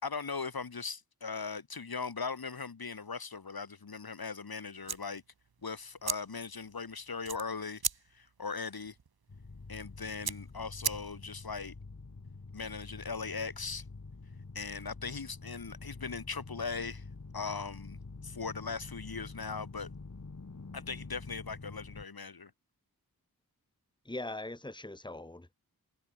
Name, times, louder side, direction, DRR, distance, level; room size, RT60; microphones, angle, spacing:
voice 1, 0.0-5.2 5.6-7.8 8.1-8.9 9.7-11.7 12.5-13.8 14.5-17.0 17.3-18.0 18.2-19.9 20.7-22.5, left 5 dB, 80° left, 2.8 m, -39 dB
sound 1, 4.8-11.5, right 6 dB, 85° right, 1.3 m, -40 dB
sound 2, 9.3-22.1, left 3 dB, 50° left, 3.0 m, -47 dB
voice 2, 24.0-25.5, left 2 dB, 10° left, 1.7 m, -41 dB
wide cardioid pair, 75°, 36 cm